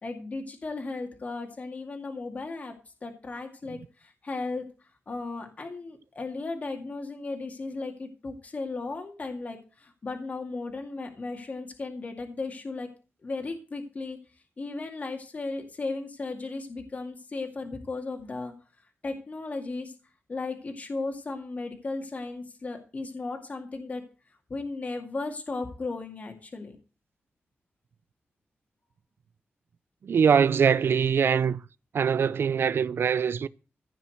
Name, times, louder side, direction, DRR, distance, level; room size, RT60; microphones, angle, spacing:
voice 1, 0.0-2.7 3.0-4.6 5.1-12.9 13.2-14.2 14.6-18.5 19.0-19.9 20.3-24.0 24.5-26.8, left 3 dB, 35° left, 2.2 m, -35 dB
voice 2, 30.0-31.6 31.9-33.5, right 7 dB, 65° right, 0.6 m, -23 dB
15.5 x 5.7 x 7.8 m
wide cardioid pair, 160°, 4 cm